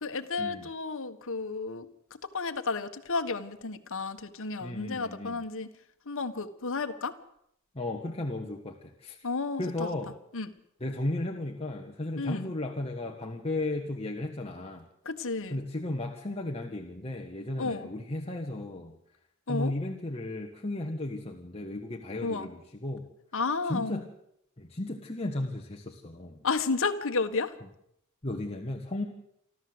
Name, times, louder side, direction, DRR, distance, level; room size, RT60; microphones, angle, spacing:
voice 1, 0.0-5.7 6.0-7.1 9.2-9.9 10.3-10.5 12.2-12.5 15.0-15.6 17.6-17.9 19.5-19.7 22.2-22.5 23.3-24.0 26.4-27.5, left 4 dB, 65° left, 8 dB, 1.5 m, -32 dB
voice 2, 4.6-5.4 7.7-9.2 9.6-10.1 10.8-14.8 15.5-18.9 19.5-23.1 23.7-24.0 24.6-26.4 28.2-29.0, left 2 dB, 30° left, 1 dB, 1.6 m, -35 dB
28.5 x 12.5 x 8.0 m, 0.77 s
head